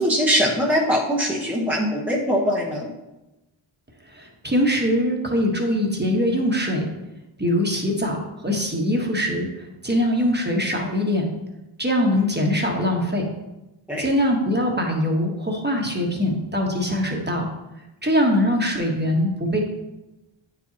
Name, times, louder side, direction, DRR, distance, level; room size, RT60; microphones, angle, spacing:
voice 1, 0.0-2.9 13.9-14.1, equal, 5° right, -3 dB, 1.0 m, -22 dB
voice 2, 4.1-6.9 7.4-9.5 9.8-11.3 11.8-13.3 14.0-17.5 18.0-19.6, equal, 20° right, 0 dB, 1.2 m, -22 dB
8.7 x 4.7 x 2.9 m, 0.98 s
cardioid pair, 55°, 50 cm